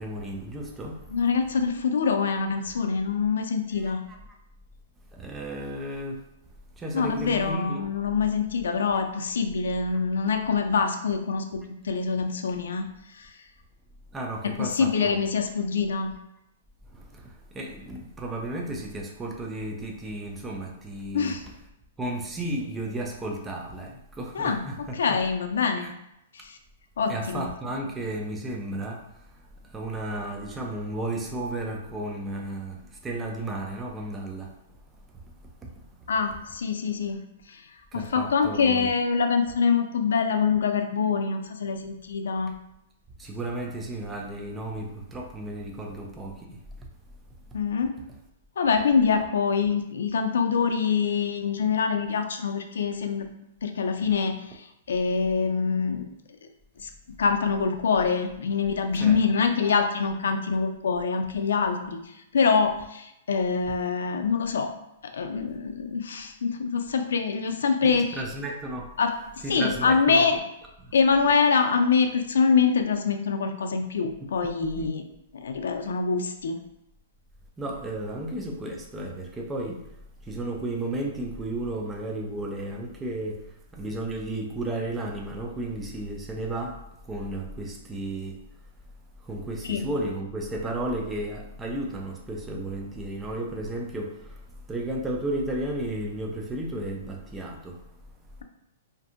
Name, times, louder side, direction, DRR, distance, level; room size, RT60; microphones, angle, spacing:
voice 1, 0.0-1.2 3.8-4.3 5.1-6.3 6.8-7.8 14.1-15.2 16.9-21.4 22.0-25.2 25.8-25.9 27.1-34.6 35.6-35.7 36.0-36.1 37.9-38.9 43.2-46.9 58.9-59.2 59.6-59.7 67.8-68.9 69.4-70.4 70.8-70.9 74.4-74.9 77.6-79.9 80.2-88.5 89.2-97.9, right 1 dB, 10° right, 0 dB, 0.3 m, -33 dB
voice 2, 1.1-4.0 6.9-12.9 13.1-13.3 14.4-16.1 21.1-21.4 24.3-25.9 26.3-26.6 27.0-27.5 36.1-37.2 37.5-37.6 37.9-42.5 47.5-47.9 48.6-53.3 53.6-56.1 56.8-62.0 62.3-64.7 65.1-68.2 69.0-69.1 69.5-70.3 70.9-75.0 75.3-76.6 89.7-89.9, left 5 dB, 85° left, 6 dB, 0.4 m, -25 dB
2.6 x 2.6 x 2.4 m, 0.83 s
hypercardioid pair, 160°, 0 cm